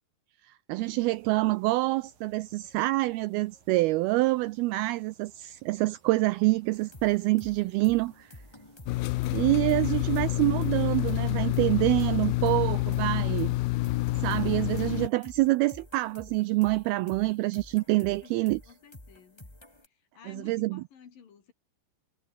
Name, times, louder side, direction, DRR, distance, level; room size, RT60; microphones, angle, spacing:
voice 1, 0.4-8.3 9.3-13.5 14.2-18.6 20.3-20.8, right 20 dB, 90° right, 2.2 m, -26 dB
sound 1, 0.8-12.3, right 6 dB, 55° right, 5.5 m, -63 dB
sound 2, 6.7-19.9, left 1 dB, 5° left, 2.5 m, -51 dB
sound 3, 8.9-15.1, left 18 dB, 90° left, 2.0 m, -28 dB
voice 2, 9.7-10.4 18.2-19.5 19.8-21.5, left 7 dB, 55° left, 4.5 m, -54 dB
omnidirectional pair, 5.0 m